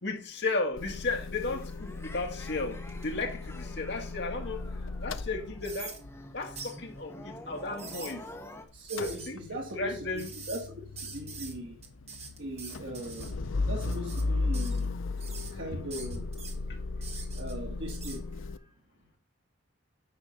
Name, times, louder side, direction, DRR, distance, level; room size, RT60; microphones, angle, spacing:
voice 1, 0.0-4.6 5.0-6.0 6.3-8.2 9.0-10.3 16.7-16.8, left 3 dB, 60° left, 1.8 m, -34 dB
Motor vehicle (road) / Engine starting / Idling, 0.8-8.5 8.7-18.6, left 3 dB, 90° left, 0.6 m, -36 dB
sound 1, 1.2-8.6, left 1 dB, 15° left, 1.2 m, -48 dB
sound 2, 1.8-4.3 4.8-4.9 5.6-6.0 6.6-6.8 7.6-8.1 8.9-9.3 10.2-10.7 11.0-11.5 11.8-13.3 13.8-14.2 14.5-14.9 15.2-15.5 15.9-16.5 17.0-17.5 17.9-18.2, right 5 dB, 35° right, 1.7 m, -44 dB
voice 2, 8.7-10.6 11.0-11.8 12.4-14.9 15.5-16.3 17.4-18.4, equal, 65° right, 2.1 m, -39 dB
9.8 x 3.6 x 6.6 m
head